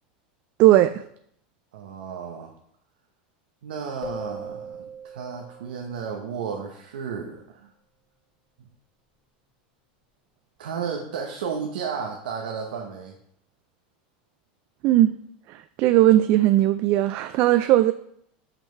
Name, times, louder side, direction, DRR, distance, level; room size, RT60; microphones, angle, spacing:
voice 1, 0.6-0.9 14.8-15.1 15.5-17.9, right 14 dB, 45° right, 11 dB, 0.3 m, -18 dB
voice 2, 1.7-2.5 3.6-7.7 10.6-13.1, right 6 dB, 90° right, 1 dB, 1.0 m, -33 dB
sound 1, 4.0-6.7, right 2 dB, 30° left, 1.0 m, -40 dB
5.8 x 5.4 x 4.5 m, 0.69 s
supercardioid pair, 135°, 5 cm